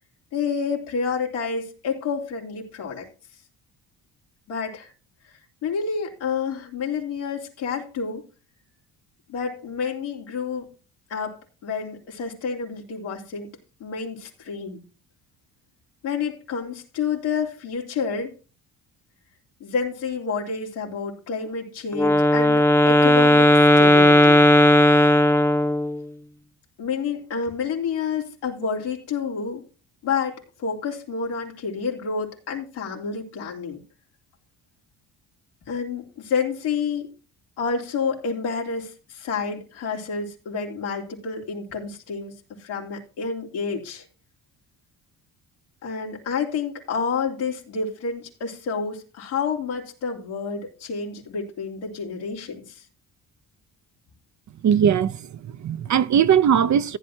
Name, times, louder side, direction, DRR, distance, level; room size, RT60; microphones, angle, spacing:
voice 1, 0.3-3.1 4.5-4.9 5.6-8.2 9.3-10.7 11.1-13.5 13.8-14.8 16.0-18.3 19.6-24.4 26.8-29.6 30.0-33.8 35.7-37.1 37.6-44.1 45.8-52.8, left 5 dB, 90° left, 3.5 m, -29 dB
Wind instrument woodwind instrument, 21.9-26.0, left 1 dB, 5° left, 0.7 m, -16 dB
voice 2, 54.6-57.0, right 8 dB, 45° right, 0.7 m, -20 dB
15.0 x 9.7 x 2.8 m
supercardioid pair, 65°, 39 cm